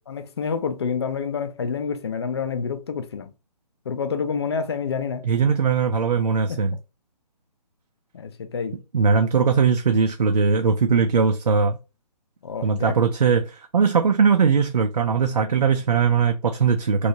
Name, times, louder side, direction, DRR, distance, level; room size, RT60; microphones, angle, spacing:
voice 1, 0.1-3.3 3.9-5.3 6.5-6.6 8.1-8.8 12.4-13.0, left 6 dB, 40° left, 0.4 m, -28 dB
voice 2, 5.2-6.7 8.9-11.8 12.6-17.1, right 5 dB, 70° right, 0.5 m, -20 dB
3.0 x 2.7 x 2.7 m
figure-of-eight pair, 140°, 21 cm